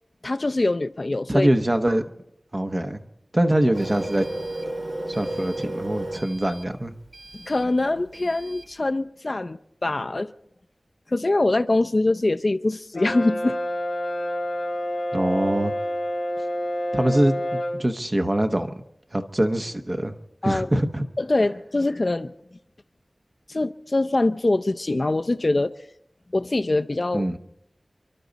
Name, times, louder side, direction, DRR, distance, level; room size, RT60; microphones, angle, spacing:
voice 1, 0.2-1.5 7.3-10.3 11.1-13.6 20.4-20.7 21.2-22.3 23.5-25.8 26.3-27.3, left 2 dB, 50° left, 0.6 m, -23 dB
voice 2, 1.3-2.0 2.5-3.1 3.3-4.3 5.1-6.9 15.1-15.7 16.9-18.7 19.1-20.2 20.4-21.0 27.1-27.4, right 1 dB, 35° right, 1.1 m, -23 dB
Printer, 3.7-8.7, right 1 dB, 70° right, 2.3 m, -34 dB
Brass instrument, 12.9-17.8, equal, 85° left, 1.6 m, -28 dB
29.5 x 12.0 x 4.1 m
wide cardioid pair, 55°, 0 cm